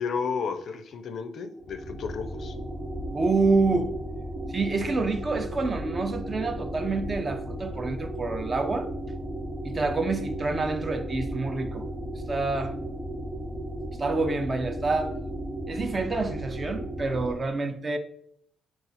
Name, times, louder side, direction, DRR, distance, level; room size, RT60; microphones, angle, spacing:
voice 1, 0.0-2.5, left 5 dB, 60° left, 0.4 m, -32 dB
sound 1, 1.5-17.3, right 1 dB, 5° right, 0.9 m, -35 dB
voice 2, 3.1-3.9 4.5-8.9 9.6-11.9 12.3-12.8 14.0-15.1 15.7-18.0, right 3 dB, 35° right, 0.5 m, -27 dB
4.0 x 2.4 x 4.0 m
cardioid pair, 90°, 0 cm